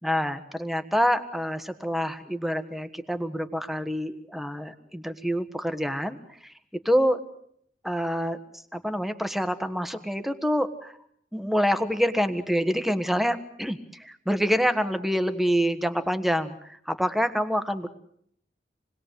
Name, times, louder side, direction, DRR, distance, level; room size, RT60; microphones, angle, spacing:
voice 1, 0.0-6.2 6.8-7.2 7.8-8.4 8.7-10.9 11.3-17.9, equal, ahead, 10 dB, 1.5 m, -26 dB
28.0 x 21.0 x 8.2 m, 0.69 s
head